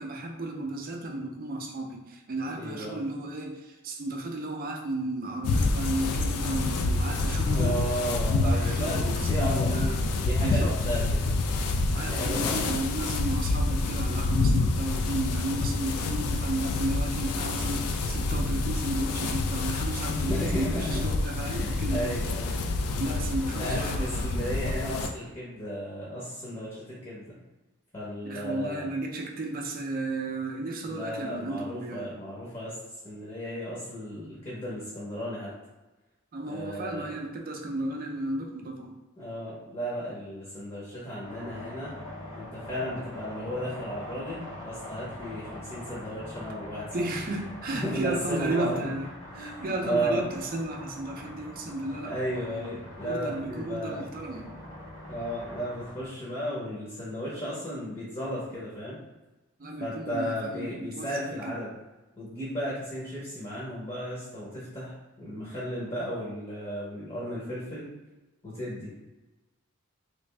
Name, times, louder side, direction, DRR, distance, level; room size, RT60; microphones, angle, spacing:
voice 1, 0.0-7.7 8.3-10.0 10.4-10.7 11.9-22.1 23.0-24.4 28.3-32.1 36.3-39.0 46.9-49.1 49.3-52.7 53.0-54.5 59.6-61.6, right 2 dB, 40° right, 2 dB, 0.4 m, -34 dB
voice 2, 2.6-2.9 7.5-11.3 12.1-12.8 20.1-21.0 21.4-22.6 23.6-27.4 27.9-28.9 30.8-32.8 33.0-35.5 36.5-37.1 39.2-41.9 42.3-46.9 47.7-48.9 49.3-50.2 52.0-54.0 55.1-59.0 59.8-61.7 62.2-67.9 68.4-68.9, equal, 25° left, -7 dB, 0.8 m, -34 dB
sound 1, 5.4-25.1, left 3 dB, 90° left, 0.4 m, -27 dB
sound 2, 41.2-56.0, left 1 dB, 65° left, 1.4 m, -43 dB
3.2 x 2.5 x 3.3 m, 1.1 s
head